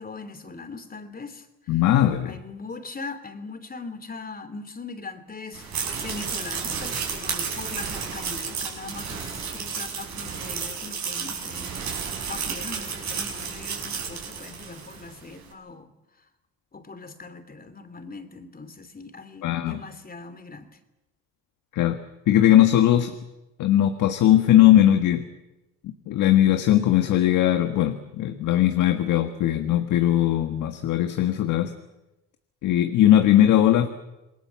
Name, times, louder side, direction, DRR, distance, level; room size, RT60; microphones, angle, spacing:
voice 1, 0.0-1.8 2.2-15.9 16.2-16.3 16.7-20.8, left 4 dB, 30° left, 10 dB, 3.0 m, -40 dB
voice 2, 1.7-2.3 19.4-19.8 21.7-22.0 22.3-23.1 23.6-25.2 25.8-31.7 32.6-33.9, left 12 dB, 85° left, 7 dB, 1.6 m, -19 dB
sound 1, 5.5-15.1, right 6 dB, 65° right, 6.9 m, -32 dB
28.0 x 20.5 x 7.4 m, 0.97 s
cardioid pair, 90°, 30 cm